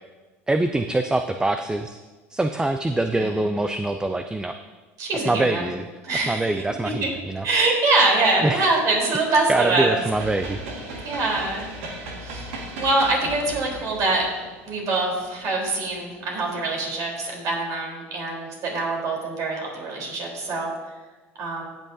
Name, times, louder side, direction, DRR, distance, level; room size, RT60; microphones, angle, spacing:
voice 1, 0.5-2.0 2.3-4.6 5.1-5.8 6.1-7.5 8.4-8.7 9.3-10.6, right 2 dB, 10° right, 8 dB, 0.4 m, -24 dB
voice 2, 5.0-5.7 6.0-7.1 7.4-10.0 11.0-12.5 12.8-14.3 14.7-20.7 21.4-21.7, right 2 dB, 50° right, -1 dB, 3.5 m, -24 dB
sound 1, 10.1-16.4, right 1 dB, 70° right, 1.7 m, -37 dB
18.5 x 6.4 x 2.7 m, 1.3 s
hypercardioid pair, 75°, 7 cm